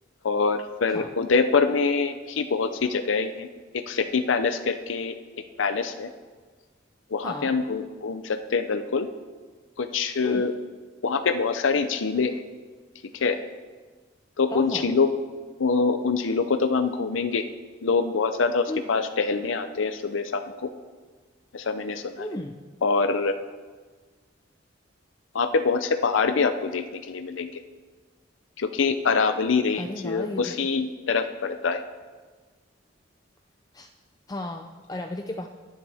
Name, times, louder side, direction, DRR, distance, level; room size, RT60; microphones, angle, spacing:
voice 1, 0.2-3.5 3.7-5.1 5.6-6.1 7.1-9.1 9.8-10.5 11.0-12.3 13.1-13.4 14.4-15.1 15.6-17.4 17.8-20.7 21.5-22.3 22.8-23.3 25.3-27.6 28.6-31.8, left 4 dB, 80° left, 8 dB, 0.6 m, -25 dB
voice 2, 7.2-7.6 10.2-10.5 14.5-14.9 18.7-19.0 22.2-22.6 29.8-30.6 33.7-33.9 34.3-35.5, left 1 dB, 20° left, 4 dB, 0.5 m, -34 dB
24.0 x 8.2 x 3.5 m, 1.4 s
head